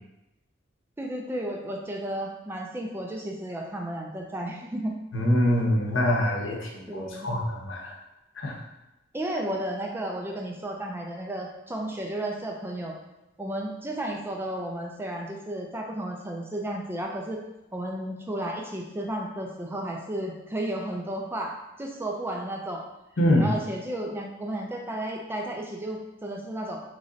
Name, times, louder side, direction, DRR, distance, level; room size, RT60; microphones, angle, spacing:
voice 1, 1.0-5.0 6.9-7.3 9.1-12.9 13.4-17.4 17.7-21.5 21.8-22.8 23.4-26.8, right 1 dB, 10° right, 0 dB, 0.4 m, -33 dB
voice 2, 5.1-7.9 8.4-8.6 23.2-23.5, left 1 dB, 75° left, -1 dB, 0.8 m, -24 dB
3.1 x 2.5 x 3.8 m, 0.95 s
head